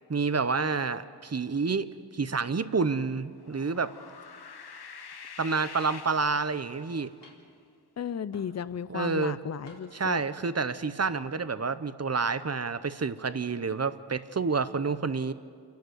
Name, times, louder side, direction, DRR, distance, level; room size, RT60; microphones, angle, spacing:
voice 1, 0.1-3.9 5.4-7.1 8.9-9.3 9.9-15.3, right 4 dB, 40° right, 13 dB, 0.8 m, -29 dB
sound 1, 3.3-7.1, left 6 dB, 65° left, 0.9 m, -46 dB
sound 2, 6.2-6.5 7.2-7.6 8.3-8.8 9.7-10.1 10.8-11.1, left 3 dB, 90° left, 4.0 m, -53 dB
voice 2, 8.0-10.2, left 7 dB, 40° left, 16 dB, 0.5 m, -34 dB
29.0 x 11.5 x 8.0 m, 2.2 s
wide cardioid pair, 85°, 41 cm